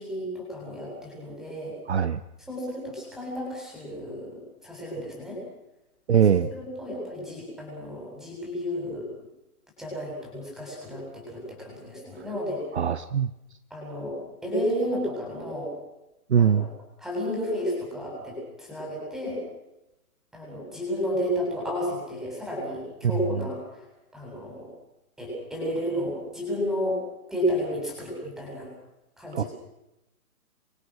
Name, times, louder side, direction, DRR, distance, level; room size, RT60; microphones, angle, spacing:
voice 1, 0.0-1.8 2.5-5.4 6.1-9.1 9.8-12.6 13.7-15.7 16.4-16.7 17.0-19.4 20.3-23.9 24.1-24.7 25.2-28.7 29.2-29.5, equal, ahead, -3 dB, 7.9 m, -32 dB
voice 2, 1.9-2.2 6.1-6.5 12.7-13.3 16.3-16.7 29.3-29.4, right 8 dB, 45° right, 12 dB, 1.0 m, -21 dB
28.5 x 24.0 x 6.5 m, 0.93 s
hypercardioid pair, 170°, 46 cm